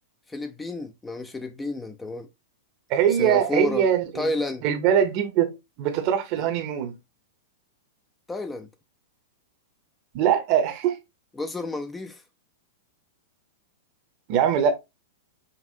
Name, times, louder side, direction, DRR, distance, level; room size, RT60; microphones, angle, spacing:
voice 1, 0.3-2.3 3.2-3.9 4.1-4.6 6.4-6.5 8.3-8.7 11.4-12.2, left 2 dB, 10° left, 0.5 m, -30 dB
voice 2, 2.9-4.3 4.6-5.5 5.8-7.0 10.1-11.0 14.3-14.7, right 9 dB, 45° right, 0.9 m, -22 dB
5.3 x 2.4 x 2.7 m
figure-of-eight pair, 105°, 0 cm